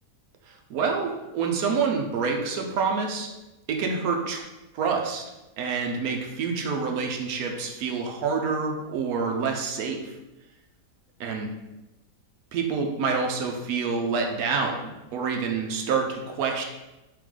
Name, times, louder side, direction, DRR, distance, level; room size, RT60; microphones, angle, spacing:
voice 1, 0.5-3.3 3.7-4.4 4.7-5.2 5.6-10.0 11.2-11.5 12.5-16.6, right 5 dB, 75° right, 2 dB, 1.0 m, -27 dB
3.4 x 3.3 x 3.6 m, 1.0 s
omnidirectional pair, 1.7 m